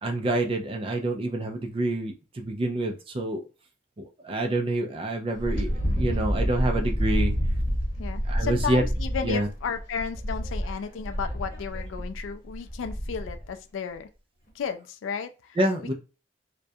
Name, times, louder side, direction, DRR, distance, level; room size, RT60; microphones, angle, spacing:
voice 1, 0.0-3.4 4.2-7.3 8.3-8.8 9.2-9.5 15.6-15.9, right 2 dB, 30° right, 0.3 m, -27 dB
Wind, 5.3-13.5, equal, 45° left, 0.9 m, -28 dB
voice 2, 8.0-14.1 14.6-15.6, left 6 dB, 85° left, 0.3 m, -33 dB
2.3 x 2.1 x 2.6 m
head